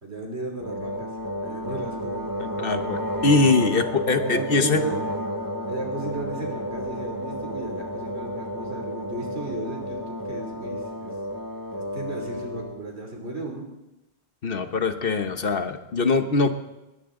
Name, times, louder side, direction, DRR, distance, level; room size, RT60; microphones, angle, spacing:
voice 1, 0.0-1.1 1.4-2.3 3.7-3.9 4.2-5.0 5.7-11.1 11.7-13.6, right 2 dB, 70° right, 2 dB, 3.3 m, -34 dB
sound 1, 0.6-12.8, equal, 20° right, 1.4 m, -32 dB
voice 2, 2.4-4.8 14.4-16.5, left 3 dB, 55° left, 8 dB, 1.3 m, -22 dB
21.0 x 18.0 x 3.8 m, 0.99 s
omnidirectional pair, 1.1 m